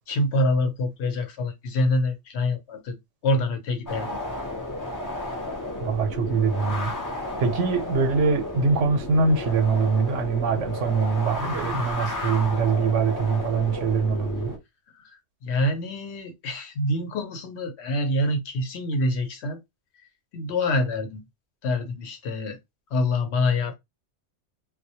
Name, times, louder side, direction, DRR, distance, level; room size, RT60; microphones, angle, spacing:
voice 1, 0.1-3.0 3.2-4.2 15.4-19.6 20.3-21.2 21.6-22.6 22.9-23.7, left 1 dB, 70° left, 0.9 m, -26 dB
sound 1, 3.9-14.6, left 2 dB, 30° left, 0.3 m, -33 dB
voice 2, 5.8-6.9 7.4-14.5, right 5 dB, 90° right, 0.9 m, -23 dB
2.1 x 2.1 x 2.7 m
omnidirectional pair, 1.2 m